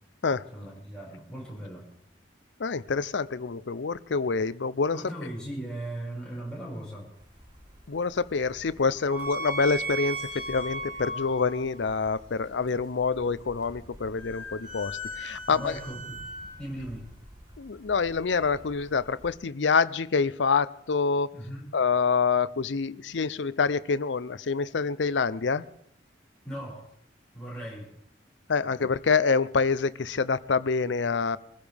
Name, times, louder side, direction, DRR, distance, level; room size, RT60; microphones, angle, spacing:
voice 1, 0.5-1.9 4.9-7.1 15.5-16.2 16.6-17.1 21.3-21.7 26.4-26.9 27.3-27.9 28.6-28.7, right 1 dB, 5° left, -6 dB, 5.7 m, -38 dB
voice 2, 2.6-5.1 7.9-15.8 17.6-21.3 21.7-25.6 28.5-31.4, left 5 dB, 90° left, 16 dB, 0.6 m, -26 dB
sound 1, 7.1-19.3, right 1 dB, 25° right, 3.3 m, -39 dB
24.0 x 15.5 x 3.5 m, 0.71 s
head